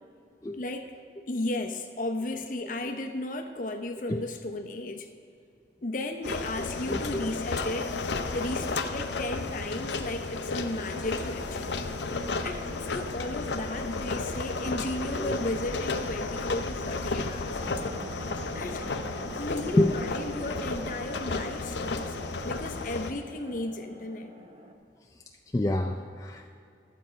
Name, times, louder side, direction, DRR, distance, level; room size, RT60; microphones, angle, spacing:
voice 1, 0.5-0.9 1.3-5.1 5.8-11.8 12.4-17.6 18.5-24.3, left 2 dB, 45° left, 6 dB, 0.8 m, -35 dB
sound 1, 6.2-23.1, left 3 dB, 80° left, 0.6 m, -33 dB
voice 2, 6.9-7.2 15.2-15.4 19.7-19.9 25.5-26.5, left 1 dB, 20° left, 2 dB, 0.3 m, -27 dB
sound 2, 11.2-19.4, equal, 70° right, 2.7 m, -49 dB
sound 3, 17.6-24.7, right 1 dB, 30° right, 0.8 m, -45 dB
11.5 x 7.5 x 5.1 m, 2.4 s
head